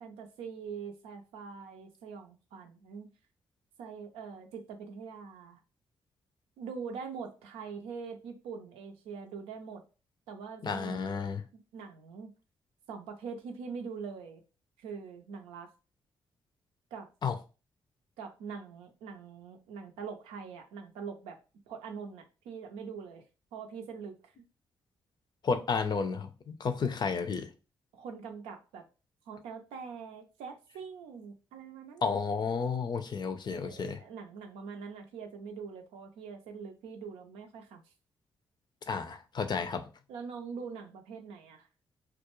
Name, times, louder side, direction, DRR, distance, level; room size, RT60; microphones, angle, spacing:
voice 1, 0.0-3.1 3.8-5.6 6.6-9.8 10.3-11.3 11.5-12.3 12.9-14.4 14.8-15.7 16.9-17.1 18.2-21.4 21.7-23.2 23.5-24.3 26.8-26.9 27.9-28.8 29.3-32.1 33.5-37.8 40.1-41.7, right 5 dB, 85° right, 0.4 m, -43 dB
voice 2, 10.6-11.4 17.2-17.4 25.4-27.5 32.0-34.0 38.9-39.8, left 5 dB, 50° left, 0.5 m, -32 dB
2.4 x 2.1 x 3.0 m
supercardioid pair, 45°, 10 cm